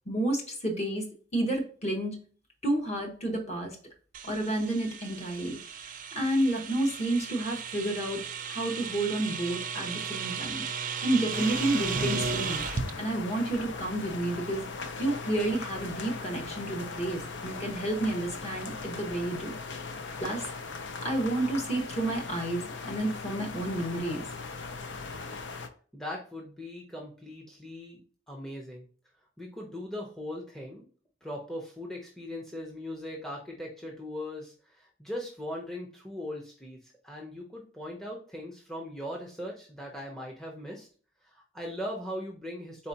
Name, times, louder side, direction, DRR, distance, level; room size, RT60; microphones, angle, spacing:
voice 1, 0.1-2.2 2.6-3.8 4.2-5.6 6.1-10.6 11.0-12.6 13.0-14.7 15.0-19.5 20.2-20.4 21.0-24.3, right 1 dB, 35° left, 2 dB, 1.2 m, -30 dB
sound 1, 4.1-12.9, right 6 dB, 45° right, 0.5 m, -35 dB
sound 2, 11.3-25.7, left 4 dB, 65° left, 0.6 m, -39 dB
voice 2, 25.9-28.0 28.3-28.9 29.4-30.9 31.2-40.9 41.2-42.9, left 1 dB, ahead, -1 dB, 0.7 m, -39 dB
4.2 x 4.1 x 2.7 m, 0.42 s
head